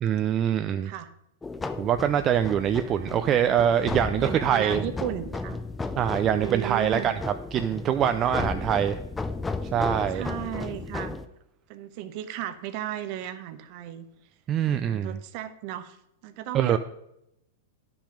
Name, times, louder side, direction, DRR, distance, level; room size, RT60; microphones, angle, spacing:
voice 1, 0.0-0.9 1.8-4.8 6.0-7.1 7.5-9.0 9.6-10.2 14.5-15.2 16.5-16.8, right 9 dB, 30° right, 9 dB, 0.4 m, -24 dB
sound 1, 1.4-11.3, left 3 dB, 10° left, 0.6 m, -34 dB
voice 2, 2.8-3.2 4.1-5.6 6.2-7.1 8.8-9.0 10.1-11.1 11.7-14.1 14.7-16.0 16.2-16.8, right 12 dB, 50° right, 11 dB, 0.9 m, -35 dB
9.9 x 6.0 x 5.1 m, 0.81 s
hypercardioid pair, 110°, 0 cm